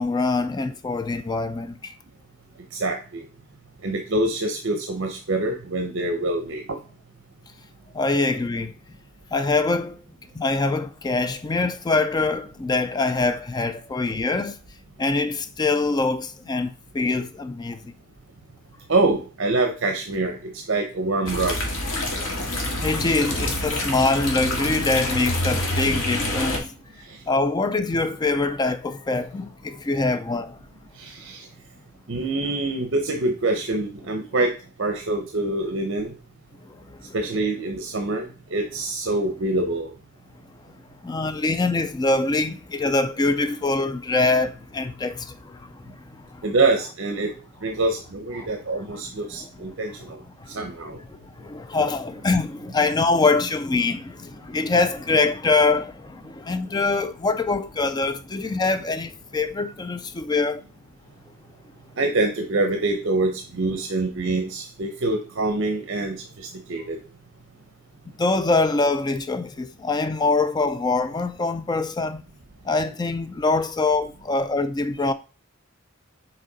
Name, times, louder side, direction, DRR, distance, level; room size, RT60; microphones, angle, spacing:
voice 1, 0.0-1.9 7.9-8.7 9.3-10.0 10.3-14.6 15.0-17.9 22.8-26.7 27.3-30.6 36.6-37.1 41.0-46.4 48.4-48.5 48.9-49.0 49.3-49.5 50.4-50.7 51.1-60.6 68.2-72.2 72.6-75.1, left 3 dB, 20° left, 0.3 m, -24 dB
voice 2, 2.7-3.2 3.8-6.8 18.9-21.6 27.0-27.2 31.0-31.5 32.1-34.5 34.8-36.1 37.1-38.3 38.5-39.9 46.4-47.3 47.6-50.2 50.5-51.0 62.0-67.0, right 2 dB, 60° right, 0.8 m, -25 dB
sound 1, 21.3-26.6, left 1 dB, 75° left, 1.8 m, -27 dB
6.4 x 4.3 x 4.0 m
head